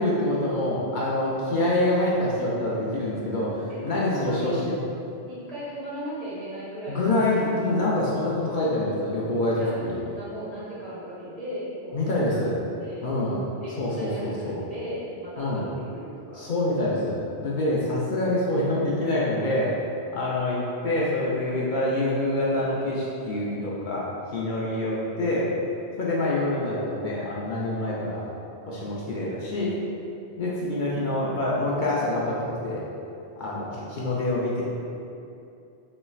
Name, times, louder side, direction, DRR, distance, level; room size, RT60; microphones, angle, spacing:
voice 1, 0.0-4.8 6.9-10.0 11.9-12.6 13.0-13.4 13.8-14.6 15.4-15.7 16.3-19.7 20.1-25.5 26.0-28.2 28.7-29.7 30.4-32.8 33.4-34.6, left 1 dB, 55° left, -6 dB, 0.6 m, -26 dB
voice 2, 4.1-4.6 5.3-7.3 9.6-12.2 12.8-13.1 13.6-16.5 17.9-18.3, equal, 35° right, -10 dB, 1.2 m, -37 dB
4.1 x 3.1 x 2.3 m, 2.7 s
omnidirectional pair, 1.1 m